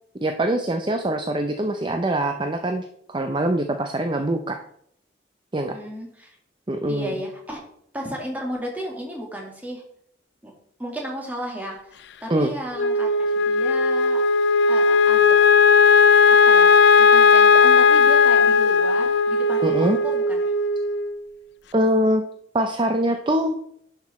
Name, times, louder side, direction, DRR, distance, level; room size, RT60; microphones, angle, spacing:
voice 1, 0.2-4.6 5.5-5.8 6.7-7.1 12.3-12.5 19.6-20.0 21.7-22.2 22.5-23.6, right 1 dB, 25° right, 6 dB, 0.6 m, -23 dB
voice 2, 5.7-6.4 6.9-7.6 7.9-9.8 10.4-10.5 10.8-14.2 14.7-15.4 16.3-16.7 17.0-20.4, equal, 10° right, -1 dB, 2.3 m, -34 dB
Wind instrument woodwind instrument, 12.8-21.2, left 5 dB, 70° left, 0.5 m, -16 dB
11.0 x 6.0 x 4.3 m, 0.67 s
head